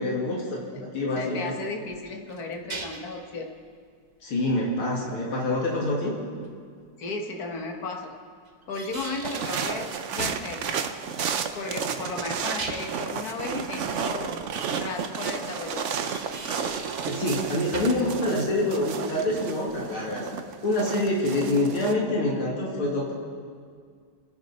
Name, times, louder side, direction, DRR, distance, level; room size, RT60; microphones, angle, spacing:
voice 1, 0.0-1.5 4.2-6.2 17.1-20.3 20.6-23.1, left 1 dB, 80° left, -3 dB, 3.1 m, -26 dB
voice 2, 1.2-3.5 7.0-8.1 8.7-10.7 11.6-14.4 14.7-15.9, left 3 dB, 50° left, 2 dB, 1.8 m, -35 dB
sound 1, 1.9-3.2 6.4-6.5 8.5-9.7 10.2-10.5 12.3-13.1 15.9-17.4 17.7-18.1, right 2 dB, 30° right, 0.8 m, -38 dB
sound 2, 9.2-21.9, right 6 dB, 85° right, 0.6 m, -32 dB
30.0 x 10.5 x 4.3 m, 2.1 s
omnidirectional pair, 2.3 m